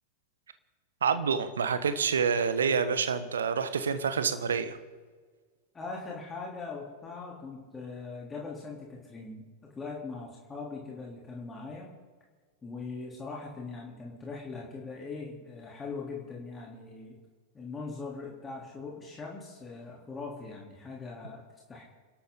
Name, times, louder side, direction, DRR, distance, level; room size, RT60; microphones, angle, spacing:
voice 1, 1.0-4.8, right 6 dB, 70° right, 12 dB, 1.2 m, -27 dB
voice 2, 5.7-9.4 9.7-11.9 12.6-17.2 17.5-21.4 21.7-21.8, left 4 dB, 15° left, -2 dB, 3.4 m, -41 dB
29.0 x 12.5 x 3.9 m, 1.5 s
figure-of-eight pair, 90°, 0 cm